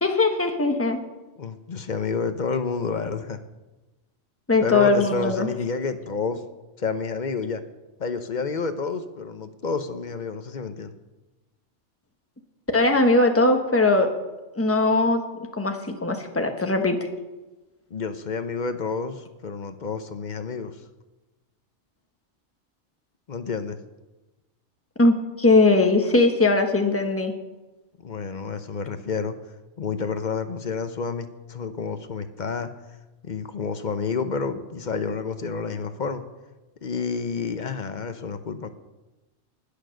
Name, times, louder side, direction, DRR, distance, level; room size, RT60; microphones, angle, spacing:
voice 1, 0.0-1.0 4.5-5.5 12.7-14.1 14.5-17.0 25.0-27.3, left 2 dB, 10° left, 5 dB, 1.2 m, -20 dB
voice 2, 1.4-3.4 4.6-6.4 6.8-7.6 8.0-10.9 17.9-20.8 23.3-23.8 28.0-29.4 29.8-32.7 33.2-36.3 36.8-38.7, left 5 dB, 45° left, 10 dB, 0.9 m, -29 dB
19.5 x 6.8 x 6.4 m, 1.1 s
omnidirectional pair, 1.2 m